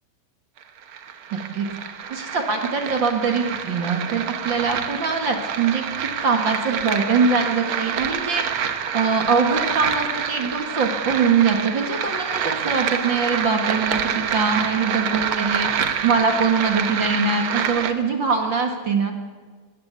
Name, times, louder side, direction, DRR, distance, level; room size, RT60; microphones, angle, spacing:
sound 1, 0.6-17.9, right 7 dB, 80° right, 1.2 m, -27 dB
voice 1, 1.3-8.4 8.9-15.7 16.0-19.1, right 5 dB, 40° right, 4 dB, 1.8 m, -23 dB
20.0 x 16.5 x 8.2 m, 1.5 s
omnidirectional pair, 4.3 m